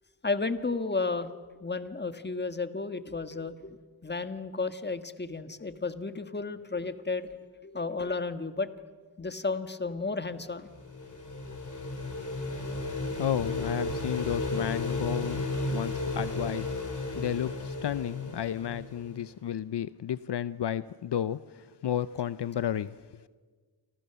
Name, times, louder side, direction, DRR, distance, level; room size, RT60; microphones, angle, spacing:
voice 1, 0.2-3.8 4.0-7.3 7.6-8.8 9.2-10.7 17.1-17.2, left 3 dB, 25° left, 10 dB, 1.5 m, -33 dB
sound 1, 10.4-19.2, left 2 dB, 45° left, 4.3 m, -34 dB
voice 2, 13.2-15.4 15.7-16.7 17.1-23.0, left 10 dB, 70° left, 15 dB, 0.7 m, -32 dB
29.5 x 25.5 x 6.9 m, 1.5 s
wide cardioid pair, 95°, 42 cm